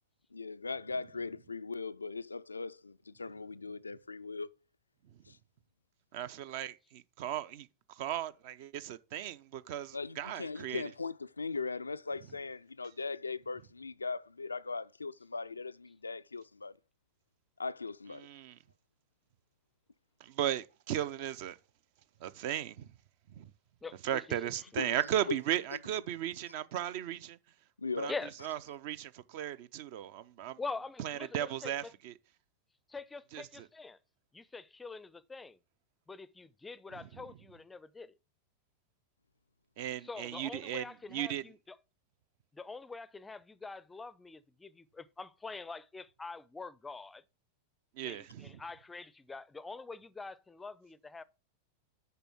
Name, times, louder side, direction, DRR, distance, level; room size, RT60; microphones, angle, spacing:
voice 1, 0.3-4.5 5.3-5.4 9.9-16.7 17.6-18.3 24.8-25.0 25.3-25.4 27.8-28.1, left 4 dB, 80° left, 0.3 m, -39 dB
voice 2, 6.1-10.8 18.2-18.6 20.2-21.6 22.2-22.9 23.3-23.5 24.0-27.4 28.0-28.1 28.4-30.6 31.0-32.1 33.3-33.7 36.9-37.2 39.8-41.4 47.9-48.6, right 11 dB, 50° right, 0.6 m, -36 dB
voice 3, 23.8-24.5 28.1-28.3 30.6-31.9 32.9-34.0 34.3-35.6 36.1-38.2 40.0-41.8 42.5-47.2 48.0-51.2, left 4 dB, 10° left, 0.5 m, -45 dB
6.8 x 5.5 x 5.9 m
figure-of-eight pair, 90°, 0 cm